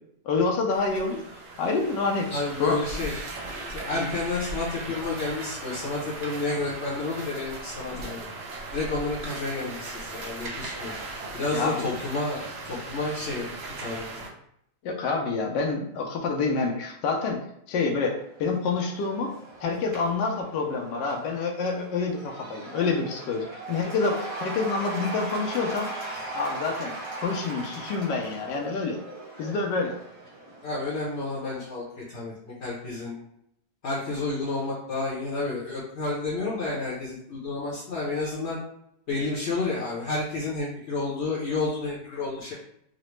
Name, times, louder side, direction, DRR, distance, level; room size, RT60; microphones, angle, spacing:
voice 1, 0.2-1.2 1.6-2.3 2.6-2.8 3.9-4.1 7.9-8.1 11.5-11.9 14.8-17.4 17.7-19.3 19.6-25.9 26.3-26.9 27.2-29.0 29.4-29.9, left 4 dB, 85° left, 2 dB, 1.2 m, -27 dB
sound 1, 0.7-14.3, right 2 dB, 75° right, 0.5 m, -38 dB
voice 2, 2.3-3.1 3.7-8.3 8.7-10.9 11.3-14.1 30.6-33.2 33.8-38.6 39.1-42.5, left 3 dB, 55° left, -6 dB, 0.8 m, -30 dB
Cheering / Applause / Crowd, 18.2-31.6, right 2 dB, 25° right, 0.9 m, -39 dB
3.8 x 2.1 x 3.0 m, 0.74 s
omnidirectional pair, 1.9 m